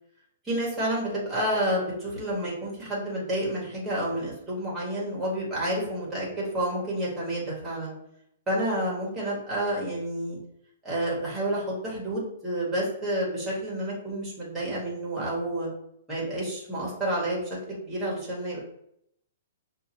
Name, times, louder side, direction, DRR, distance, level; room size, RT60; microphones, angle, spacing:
voice 1, 0.4-7.9 8.5-10.4 10.8-15.7 16.1-18.6, right 1 dB, 5° right, -6 dB, 0.9 m, -29 dB
5.2 x 2.2 x 2.8 m, 0.75 s
hypercardioid pair, 180°, 0 cm